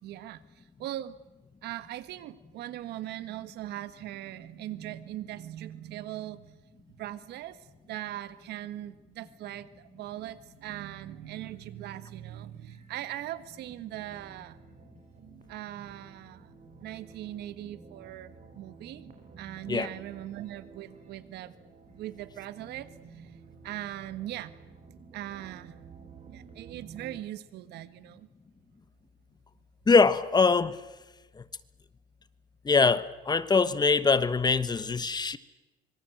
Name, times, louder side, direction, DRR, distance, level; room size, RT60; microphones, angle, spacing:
voice 1, 0.0-1.2 1.6-6.6 7.0-14.6 15.5-16.5 16.8-19.1 19.4-21.5 21.9-23.4 23.6-24.5 25.1-25.9 26.2-28.3, right 13 dB, 80° right, 1.5 m, -40 dB
sound 1, 12.5-27.2, right 5 dB, 45° right, 6.6 m, -52 dB
voice 2, 29.9-30.8 31.4-31.5 32.6-35.4, left 4 dB, 25° left, 1.2 m, -23 dB
25.5 x 24.0 x 7.8 m
cardioid pair, 110°, 17 cm